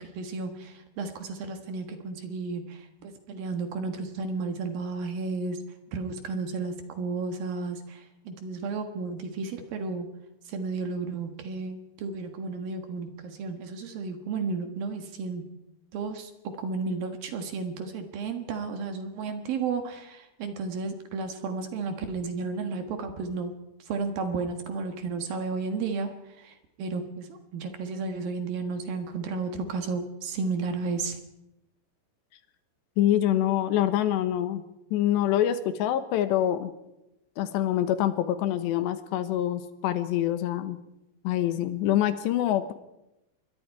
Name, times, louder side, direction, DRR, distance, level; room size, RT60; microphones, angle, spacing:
voice 1, 0.0-5.6 5.9-10.1 10.5-15.5 15.9-23.5 23.8-31.2, right 4 dB, 60° right, 6 dB, 3.0 m, -33 dB
voice 2, 33.0-34.6 34.9-36.7 37.4-40.8 41.2-42.7, left 12 dB, 80° left, 11 dB, 3.2 m, -25 dB
27.5 x 22.5 x 4.7 m, 0.91 s
omnidirectional pair, 5.1 m